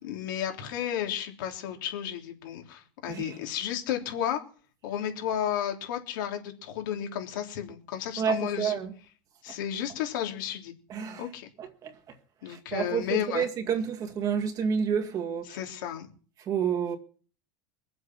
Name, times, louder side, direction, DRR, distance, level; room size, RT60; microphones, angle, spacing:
voice 1, 0.0-4.4 4.8-8.7 9.4-10.7 11.2-11.5 12.4-13.5 15.5-16.1, left 10 dB, 80° left, 3.3 m, -32 dB
voice 2, 3.1-3.4 8.2-8.9 10.9-11.3 11.6-12.2 12.5-15.6 16.4-17.0, right 7 dB, 35° right, 2.1 m, -30 dB
22.5 x 7.8 x 6.1 m
supercardioid pair, 135°, 11 cm